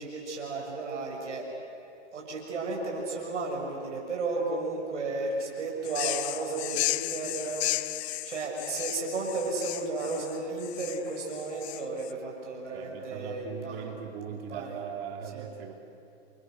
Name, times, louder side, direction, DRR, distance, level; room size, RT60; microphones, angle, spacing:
voice 1, 0.0-1.5 2.1-13.9 14.5-14.8 15.3-15.5, right 3 dB, 90° right, -2 dB, 7.1 m, -34 dB
sound 1, 5.8-12.1, left 15 dB, 65° left, 0.8 m, -34 dB
voice 2, 12.7-15.7, right 7 dB, 55° right, 3 dB, 4.0 m, -39 dB
29.5 x 29.0 x 6.6 m, 2.6 s
hypercardioid pair, 125°, 35 cm